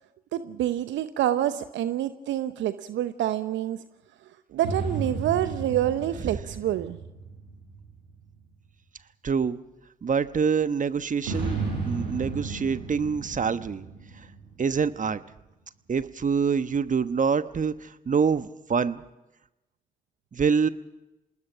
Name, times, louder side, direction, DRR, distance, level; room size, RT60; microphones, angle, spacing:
voice 1, 0.3-3.8 4.5-7.0, right 12 dB, 65° right, 12 dB, 0.8 m, -27 dB
sound 1, 4.6-8.3 11.2-15.0, right 4 dB, 85° right, 6.4 m, -34 dB
voice 2, 9.2-9.6 10.0-11.6 11.8-13.8 14.6-15.2 15.9-19.0 20.3-20.7, right 6 dB, 40° right, 12 dB, 1.2 m, -25 dB
27.0 x 19.5 x 6.2 m, 0.97 s
hypercardioid pair, 40°, 20 cm